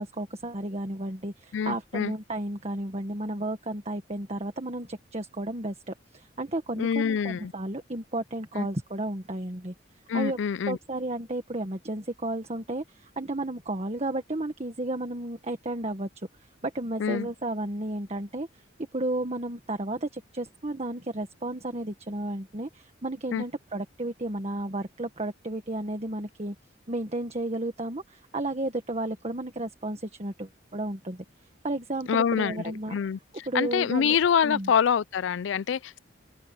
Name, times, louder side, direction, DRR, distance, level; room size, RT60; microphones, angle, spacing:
voice 1, 0.0-9.7 10.1-10.4 10.7-16.1 16.6-18.6 18.9-26.5 26.9-31.2 31.6-33.0 33.5-34.2 34.4-34.7, right 1 dB, 35° right, 1.6 m, -33 dB
voice 2, 1.5-2.1 6.8-7.5 8.6-8.7 10.1-10.8 17.0-17.3 23.3-23.4 32.1-33.2 33.5-36.0, left 7 dB, 75° left, 0.4 m, -26 dB
open air
head